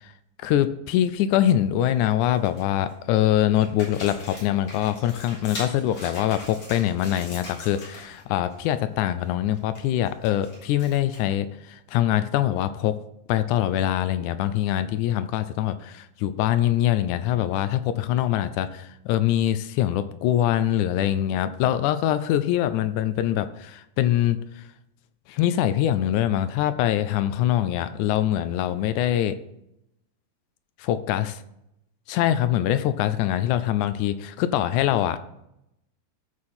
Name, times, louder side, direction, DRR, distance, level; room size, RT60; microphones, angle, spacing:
voice 1, 0.4-13.0 13.3-24.6 25.3-29.4 30.8-31.3 32.1-35.2, left 12 dB, 80° left, 12 dB, 1.8 m, -23 dB
sound 1, 1.4-1.9 2.3-2.9 3.5-8.2 8.5-8.8 9.1-11.4, left 1 dB, 60° left, 5.0 m, -42 dB
14.0 x 4.8 x 4.3 m, 0.82 s
omnidirectional pair, 3.9 m